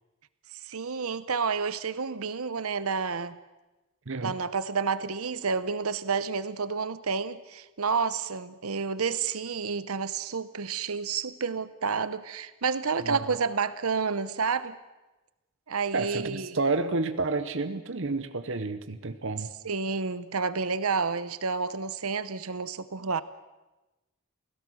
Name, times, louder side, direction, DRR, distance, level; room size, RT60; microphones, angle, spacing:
voice 1, 0.6-3.4 4.2-14.8 15.7-16.6 19.6-23.2, right 5 dB, 80° right, 14 dB, 0.9 m, -30 dB
voice 2, 15.9-19.5, right 3 dB, 60° right, 10 dB, 1.0 m, -30 dB
28.5 x 17.0 x 6.4 m, 1.1 s
head